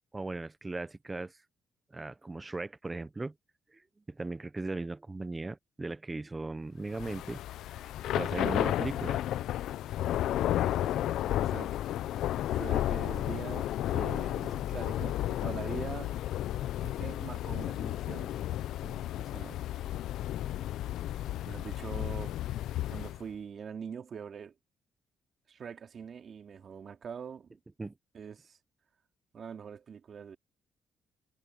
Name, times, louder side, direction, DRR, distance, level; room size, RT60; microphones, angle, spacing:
voice 1, 0.1-1.4 1.9-3.3 3.7-3.8 4.1-7.4 8.1-9.2 27.8-27.9, right 3 dB, 20° right, 0.8 m, -37 dB
Thunder / Rain, 6.9-23.2, left 13 dB, 80° left, 0.5 m, -32 dB
voice 2, 10.6-11.1 11.4-11.8 12.5-16.1 16.8-18.4 18.8-19.6 21.4-22.4 22.9-24.5 25.5-27.6 28.1-28.6 29.3-30.4, right 7 dB, 50° right, 2.6 m, -43 dB
cardioid pair, 90°, 0 cm